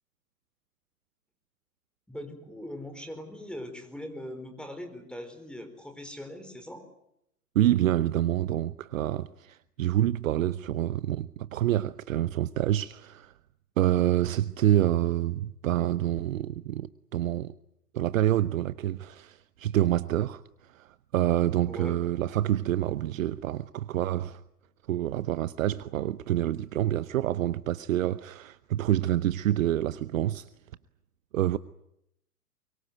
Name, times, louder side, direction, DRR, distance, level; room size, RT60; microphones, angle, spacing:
voice 1, 2.1-6.8 21.7-22.0, left 1 dB, ahead, 4.5 m, -41 dB
voice 2, 7.5-13.3 13.8-17.5 17.9-24.4 24.9-30.5 31.3-31.6, right 13 dB, 55° right, 0.9 m, -27 dB
23.5 x 23.0 x 9.3 m
hypercardioid pair, 115°, 47 cm